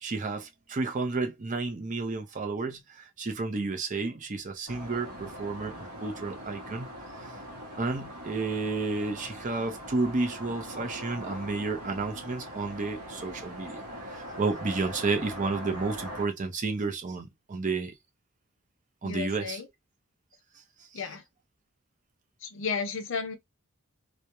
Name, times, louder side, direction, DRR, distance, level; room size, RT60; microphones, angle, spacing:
voice 1, 0.0-6.9 7.2-7.3 7.8-17.9 19.0-19.6 20.9-21.0, right 3 dB, 35° right, 0.5 m, -31 dB
sound 1, 4.7-16.3, equal, 85° right, 0.8 m, -41 dB
voice 2, 19.0-19.7 20.9-21.2 22.4-23.4, left 5 dB, 55° left, 0.5 m, -33 dB
2.3 x 2.0 x 2.9 m
head